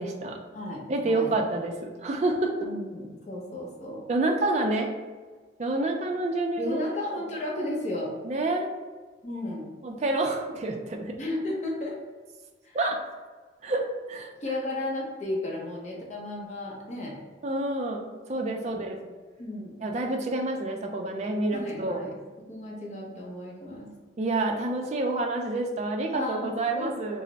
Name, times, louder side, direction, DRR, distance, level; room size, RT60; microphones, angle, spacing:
voice 1, 0.0-0.4 0.9-2.5 4.1-4.9 5.6-6.9 8.2-8.7 9.8-11.2 12.7-13.0 13.6-14.3 17.4-19.0 19.8-22.0 24.2-27.2, right 2 dB, 35° right, 2 dB, 0.3 m, -28 dB
voice 2, 0.5-1.4 2.6-4.0 6.6-8.1 9.2-9.7 11.2-12.0 12.6-12.8 14.4-17.2 18.6-18.9 19.4-19.7 21.5-22.1 22.5-23.9 26.1-26.9, left 1 dB, 35° left, -3 dB, 0.7 m, -34 dB
3.2 x 2.0 x 3.9 m, 1.4 s
head